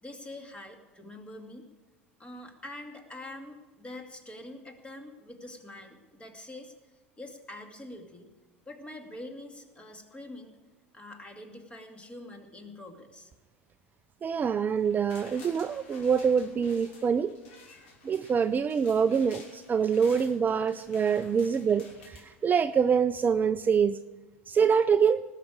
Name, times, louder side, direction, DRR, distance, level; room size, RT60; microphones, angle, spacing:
voice 1, 0.0-1.7 2.2-6.7 7.2-8.3 8.7-10.6 10.9-13.3, left 1 dB, 15° left, 4 dB, 2.4 m, -45 dB
voice 2, 14.2-17.3 18.0-24.0 24.5-25.2, right 6 dB, 25° right, 12 dB, 0.5 m, -25 dB
sound 1, 14.8-22.9 23.3-23.4, left 3 dB, 65° left, 3.2 m, -52 dB
19.0 x 6.6 x 8.6 m, 1.2 s
figure-of-eight pair, 75°, 7 cm